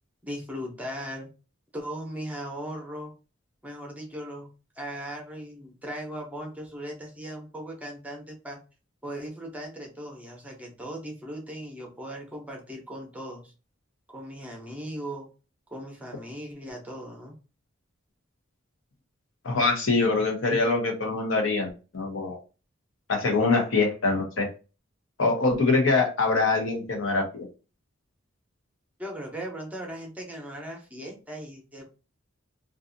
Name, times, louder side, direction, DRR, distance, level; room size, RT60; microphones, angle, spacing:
voice 1, 0.2-1.3 1.7-3.1 3.6-4.5 4.8-8.6 9.0-13.5 14.1-15.3 15.7-17.3 29.0-31.8, equal, 5° right, 0 dB, 0.7 m, -38 dB
voice 2, 19.4-22.4 23.1-24.5 25.2-27.5, left 3 dB, 70° left, 3 dB, 0.8 m, -24 dB
2.6 x 2.4 x 2.5 m, 0.32 s
head